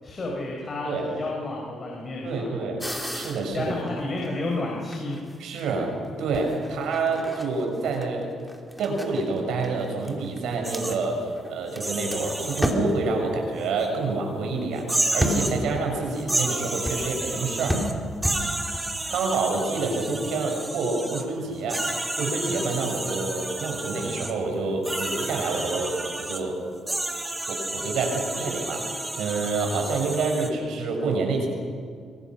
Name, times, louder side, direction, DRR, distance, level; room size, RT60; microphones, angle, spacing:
voice 1, 0.0-2.5 3.5-5.2, left 2 dB, 35° left, -2 dB, 5.4 m, -31 dB
voice 2, 2.2-2.8 3.1-3.7 5.4-5.9 6.2-8.3 8.8-17.8 19.1-26.6 27.5-31.5, right 3 dB, 80° right, 2 dB, 6.4 m, -28 dB
sound 1, 2.8-4.5 4.9-5.6 6.3-11.8 12.1-12.2 12.5-13.1 15.2-15.8 16.9-17.2 17.7-18.9, equal, ahead, 3.2 m, -31 dB
sound 2, 10.6-11.0 11.7-12.7 13.8-13.9 14.8-15.6 16.1-17.9 18.2-21.2 21.7-24.3 24.8-26.4 26.9-30.5, right 2 dB, 15° right, 2.7 m, -31 dB
26.5 x 24.0 x 6.3 m, 2.1 s
cardioid pair, 90°, 0 cm